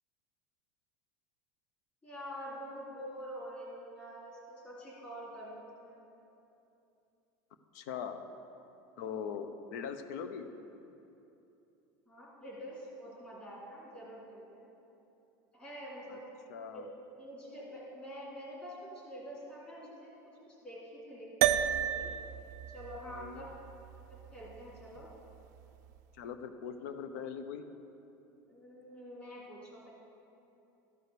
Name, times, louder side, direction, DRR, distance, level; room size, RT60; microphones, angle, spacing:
voice 1, 2.0-5.9 12.1-14.7 15.5-16.3 16.7-16.9 17.1-20.2 20.5-22.1 22.7-23.5 24.1-25.1 26.7-26.9 28.5-29.9, equal, 15° left, -6 dB, 2.4 m, -46 dB
voice 2, 7.7-8.2 9.0-10.5 16.1-16.2 16.5-16.9 23.1-23.5 26.2-27.6, left 7 dB, 80° left, 9 dB, 0.7 m, -41 dB
sound 1, 21.4-26.0, right 11 dB, 80° right, 0.4 m, -34 dB
13.0 x 4.9 x 6.7 m, 2.9 s
cardioid pair, 175°, 9 cm